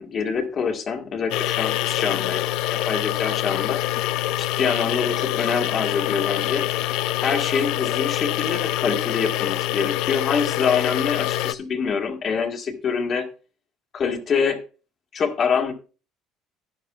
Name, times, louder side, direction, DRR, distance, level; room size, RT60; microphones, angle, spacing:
voice 1, 0.0-2.4 2.7-3.8 4.4-6.7 7.2-13.3 13.9-14.6 15.1-15.7, left 6 dB, 40° left, 4 dB, 1.8 m, -25 dB
sound 1, 1.3-11.5, left 15 dB, 75° left, 0.4 m, -25 dB
11.0 x 10.5 x 2.4 m, 0.34 s
cardioid pair, 130°, 0 cm